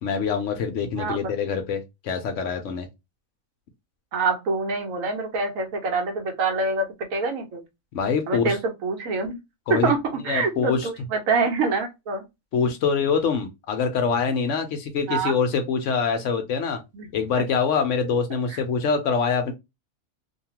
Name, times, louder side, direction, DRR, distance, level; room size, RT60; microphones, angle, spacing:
voice 1, 0.0-2.9 7.9-8.6 9.7-9.9 10.3-10.9 12.5-16.8 17.1-19.5, left 5 dB, 70° left, 0.9 m, -24 dB
voice 2, 1.0-1.3 4.1-7.6 8.3-9.4 9.7-12.2 15.1-15.4 16.9-17.1 18.5-18.6, right 3 dB, 75° right, 1.2 m, -25 dB
2.7 x 2.3 x 2.8 m
omnidirectional pair, 1.5 m